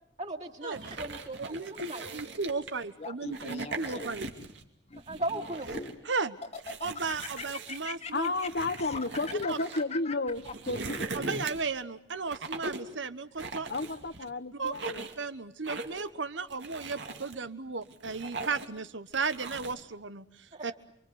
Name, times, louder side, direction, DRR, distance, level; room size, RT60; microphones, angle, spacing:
voice 1, 0.2-2.0 5.1-5.7 20.5-20.7, right 2 dB, 40° right, 3.2 m, -37 dB
sound 1, 0.7-2.8 3.3-4.6 5.0-6.0 6.5-9.8 10.3-11.8 12.3-12.9 13.4-14.3 14.7-15.2 15.6-16.1 16.5-17.4 17.8-18.8 19.1-19.8, right 3 dB, 65° right, 2.5 m, -40 dB
voice 2, 1.5-4.3 6.0-6.4 6.8-8.3 9.5-9.6 11.1-13.7 14.5-14.7 15.2-20.2 20.6-20.7, right 4 dB, 90° right, 1.2 m, -35 dB
Laughter, 3.0-4.3 4.9-6.0 6.4-11.4, left 4 dB, 35° left, 1.4 m, -41 dB
voice 3, 8.1-11.0 13.7-15.1, left 2 dB, 60° left, 1.1 m, -32 dB
28.5 x 23.5 x 8.1 m
head